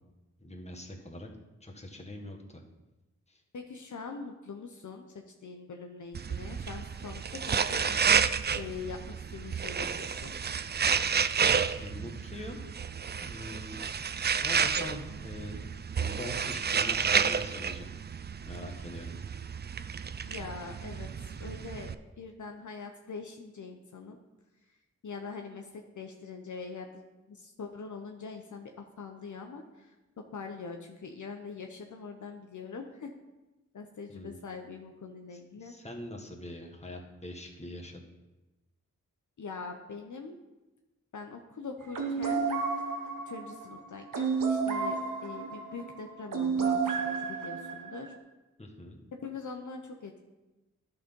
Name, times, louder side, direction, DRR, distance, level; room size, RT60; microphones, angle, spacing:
voice 1, 0.4-1.3 1.6-2.6 3.3-3.4 11.8-12.6 13.1-13.8 14.4-15.6 16.0-17.9 18.5-19.1 34.1-34.4 35.3-38.0 48.6-49.0, left 1 dB, 20° left, 1 dB, 1.5 m, -43 dB
voice 2, 3.5-7.9 8.5-10.3 20.2-21.9 22.2-24.2 25.0-33.1 33.7-35.7 39.4-40.4 41.1-42.4 43.3-48.1 49.1-50.2, left 4 dB, 65° left, 3 dB, 0.8 m, -43 dB
sound 1, 6.1-21.9, right 6 dB, 30° right, 0.4 m, -31 dB
sound 2, 41.9-48.2, right 5 dB, 80° right, 1.0 m, -31 dB
11.0 x 3.9 x 5.3 m, 1.1 s
cardioid pair, 45°, 32 cm